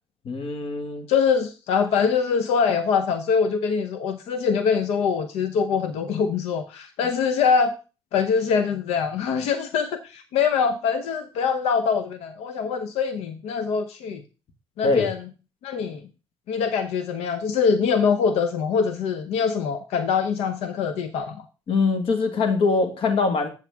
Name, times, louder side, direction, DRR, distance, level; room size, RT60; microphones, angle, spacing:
voice 1, 0.3-1.0 14.8-15.1 21.7-23.5, left 4 dB, 60° left, 1.6 m, -23 dB
voice 2, 1.1-7.8 8.1-14.2 14.8-15.2 15.6-16.0 16.5-21.4, left 6 dB, 80° left, 0.8 m, -23 dB
8.1 x 7.2 x 3.5 m
supercardioid pair, 75°, 10 cm